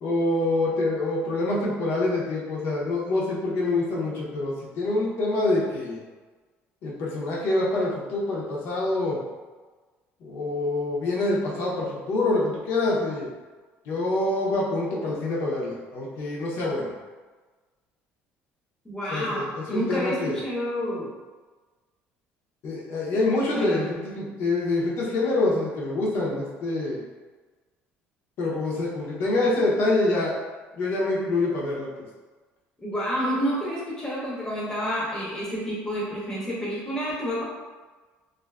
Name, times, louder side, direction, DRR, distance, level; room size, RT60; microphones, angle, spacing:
voice 1, 0.0-6.0 6.8-9.2 10.2-13.3 13.9-16.9 19.1-20.4 22.6-27.0 28.4-30.3 30.7-31.9, left 2 dB, 55° left, -5 dB, 0.6 m, -26 dB
voice 2, 18.8-21.1 23.5-23.8 32.8-37.4, equal, 15° left, -6 dB, 0.6 m, -29 dB
2.5 x 2.4 x 2.2 m, 1.3 s
cardioid pair, 165°, 5 cm